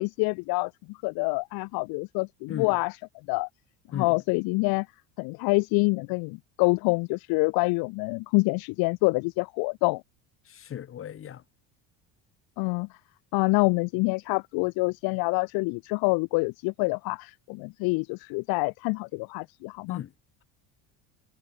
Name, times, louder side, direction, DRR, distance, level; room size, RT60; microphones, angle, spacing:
voice 1, 0.0-3.0 3.3-3.5 3.9-4.9 5.2-10.0 12.6-12.9 13.3-20.0, left 28 dB, 60° left, 0.6 m, -26 dB
voice 2, 10.5-11.4 19.9-20.1, left 10 dB, 30° left, 3.2 m, -36 dB
cardioid pair, 165°, 42 cm